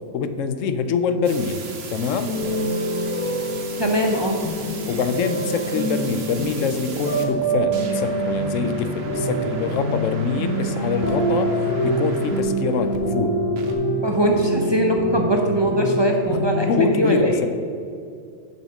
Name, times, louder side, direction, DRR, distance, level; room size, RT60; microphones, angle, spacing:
voice 1, 0.1-1.6 1.9-2.3 4.9-11.5 11.8-13.4 16.3-16.4 16.7-17.5, left 5 dB, 85° left, 10 dB, 1.0 m, -24 dB
sound 1, 1.2-13.0 13.6-13.7, right 4 dB, 55° right, 1.1 m, -38 dB
sound 2, 2.3-16.7, right 1 dB, 10° left, 1.1 m, -25 dB
voice 2, 3.8-4.4 14.0-17.5, right 1 dB, 30° right, 2 dB, 0.5 m, -21 dB
7.3 x 5.6 x 6.3 m, 2.3 s
omnidirectional pair, 1.3 m